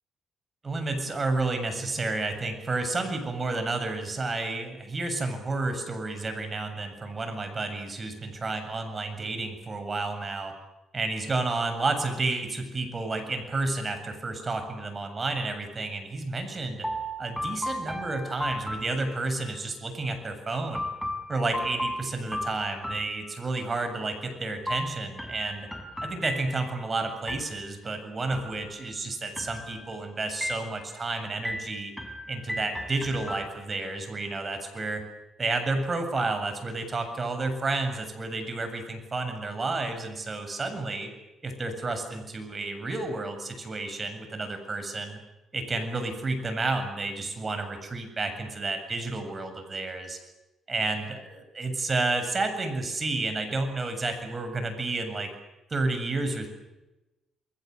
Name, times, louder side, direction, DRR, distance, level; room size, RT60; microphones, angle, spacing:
voice 1, 0.6-10.5 10.9-16.9 17.2-20.9 21.3-25.7 26.0-31.9 32.3-35.0 35.4-41.1 41.4-45.2 45.5-50.2 50.7-55.3 55.7-56.5, right 3 dB, 30° right, 7 dB, 7.7 m, -31 dB
sound 1, 16.8-19.6 20.7-23.8 24.7-26.9 27.3-27.9 28.3-29.0 29.4-30.0 30.4-31.1 31.4-33.9, equal, 5° left, 5.7 m, -36 dB
29.5 x 21.5 x 8.1 m, 1.0 s
cardioid pair, 90°, 0 cm